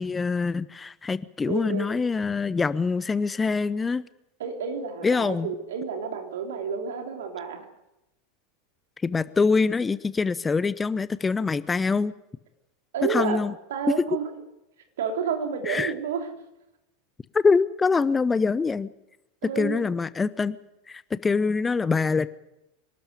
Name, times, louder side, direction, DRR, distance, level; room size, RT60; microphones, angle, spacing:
voice 1, 0.0-4.1 5.0-5.5 9.0-12.1 13.1-13.5 15.6-15.9 17.3-18.9 19.4-20.6 20.9-22.3, left 4 dB, 15° left, 17 dB, 0.7 m, -24 dB
voice 2, 1.5-1.9 4.4-7.7 12.9-13.4 13.7-14.3 15.0-16.3 19.4-19.9, right 6 dB, 65° right, 4 dB, 3.4 m, -30 dB
25.5 x 12.5 x 9.5 m, 0.94 s
figure-of-eight pair, 85°, 0 cm